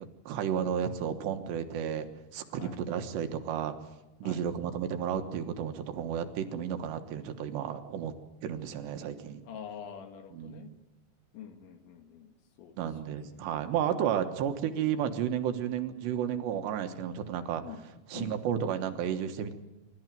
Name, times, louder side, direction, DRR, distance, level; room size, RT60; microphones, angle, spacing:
voice 1, 0.3-2.1 2.3-3.7 4.2-8.1 8.4-9.4 10.3-10.7 12.8-17.6 18.1-19.5, right 9 dB, 75° right, 7 dB, 3.3 m, -32 dB
voice 2, 9.4-10.7 11.3-12.3 12.6-12.8 13.1-13.5 17.6-17.8 18.1-18.4, left 8 dB, 80° left, 6 dB, 4.3 m, -45 dB
26.5 x 13.5 x 9.1 m, 1.0 s
omnidirectional pair, 5.2 m